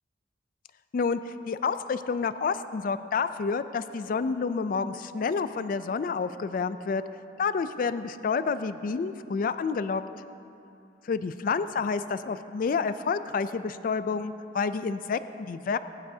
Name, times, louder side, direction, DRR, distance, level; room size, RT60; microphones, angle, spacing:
voice 1, 0.9-7.0 7.4-10.0 11.0-15.8, left 5 dB, 45° left, 12 dB, 0.3 m, -29 dB
20.0 x 10.5 x 2.7 m, 2.7 s
head